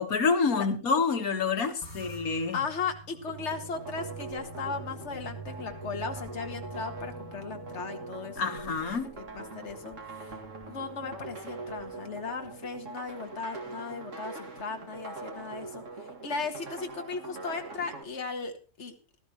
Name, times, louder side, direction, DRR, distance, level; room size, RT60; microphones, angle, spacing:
voice 1, 0.0-2.6 8.4-9.1, left 5 dB, 85° left, 2.0 m, -27 dB
sound 1, 1.8-12.4, right 3 dB, 30° left, 2.4 m, -47 dB
voice 2, 2.5-8.9 9.2-10.4 10.7-18.9, left 4 dB, 55° left, 2.0 m, -37 dB
sound 2, 3.3-18.0, right 3 dB, 60° right, 2.6 m, -43 dB
17.5 x 13.0 x 3.0 m
omnidirectional pair, 1.5 m